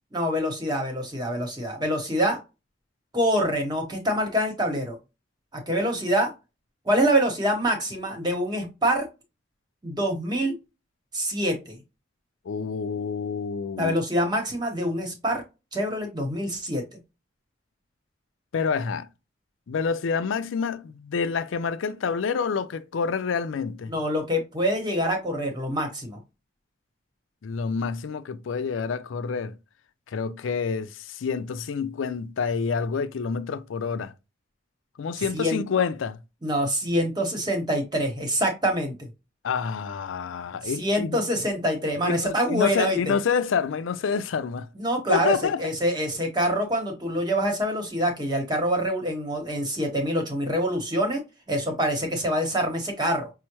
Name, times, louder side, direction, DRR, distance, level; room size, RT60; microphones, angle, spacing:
voice 1, 0.1-2.4 3.1-5.0 5.5-6.3 6.8-9.1 9.8-10.5 11.1-11.8 13.8-15.4 15.7-17.0 23.9-26.2 35.2-35.6 36.4-39.1 40.6-43.1 44.7-51.2 51.5-53.3, equal, 20° right, 1.0 m, -25 dB
voice 2, 12.5-13.9 18.5-19.1 19.7-23.9 27.4-29.5 30.1-34.1 35.0-36.2 39.4-41.2 42.0-44.7 45.1-45.6, left 5 dB, 90° left, 0.4 m, -28 dB
5.6 x 2.1 x 3.0 m
head